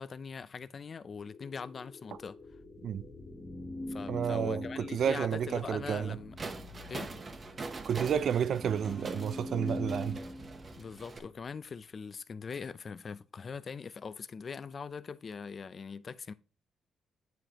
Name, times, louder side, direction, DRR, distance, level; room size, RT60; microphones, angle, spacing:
voice 1, 0.0-2.4 3.9-6.4 6.9-7.1 10.7-16.3, left 5 dB, 35° left, 0.3 m, -42 dB
sound 1, 1.2-6.2, left 4 dB, 55° left, 1.5 m, -53 dB
sound 2, 2.2-11.5, left 1 dB, 15° left, 1.0 m, -43 dB
voice 2, 4.1-4.7 4.9-6.2 7.8-10.2, right 8 dB, 55° right, 0.3 m, -31 dB
sound 3, 6.4-11.2, right 3 dB, 30° right, 0.8 m, -43 dB
9.3 x 4.9 x 2.9 m
cardioid pair, 140°, 0 cm